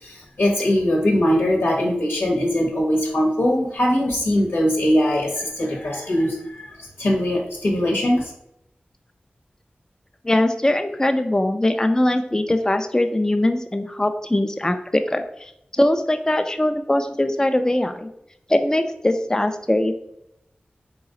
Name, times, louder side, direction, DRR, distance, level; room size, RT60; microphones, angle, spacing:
voice 1, 0.0-8.3, equal, 85° left, -2 dB, 0.9 m, -21 dB
voice 2, 10.2-15.5 15.8-18.1 18.5-19.9, left 1 dB, 15° left, 7 dB, 0.4 m, -21 dB
3.9 x 3.0 x 3.7 m, 0.79 s
cardioid pair, 40°, 4 cm